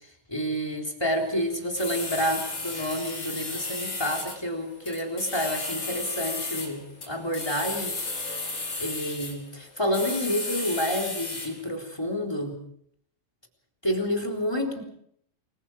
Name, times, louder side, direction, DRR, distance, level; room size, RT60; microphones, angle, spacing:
voice 1, 0.3-7.9 8.8-12.6 13.8-14.8, equal, 5° left, 2 dB, 2.8 m, -29 dB
sound 1, 1.2-11.6, left 3 dB, 30° left, 5.9 m, -34 dB
28.5 x 24.0 x 4.8 m, 0.68 s
omnidirectional pair, 5.6 m